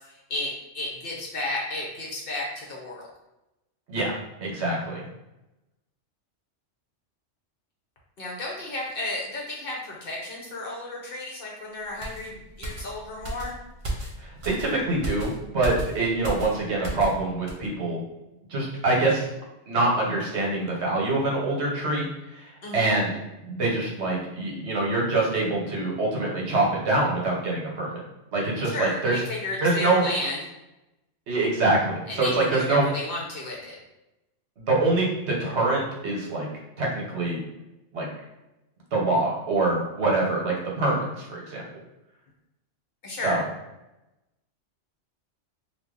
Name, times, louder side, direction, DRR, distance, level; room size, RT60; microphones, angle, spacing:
voice 1, 0.0-3.1 8.2-13.5 22.6-23.0 28.7-30.4 32.1-33.8 43.0-43.4, left 2 dB, 55° left, -3 dB, 0.8 m, -33 dB
voice 2, 4.4-5.0 14.2-18.0 18.5-19.2 19.7-23.1 23.4-28.0 28.3-29.2 29.6-30.0 31.3-32.8 34.6-36.5 36.8-37.4 37.9-38.1 38.9-41.6 43.2-43.4, right 2 dB, 65° right, -2 dB, 1.1 m, -25 dB
sound 1, 12.0-17.2 17.5-17.7, right 1 dB, 40° right, 0.5 m, -35 dB
2.7 x 2.2 x 3.6 m, 0.95 s
omnidirectional pair, 1.2 m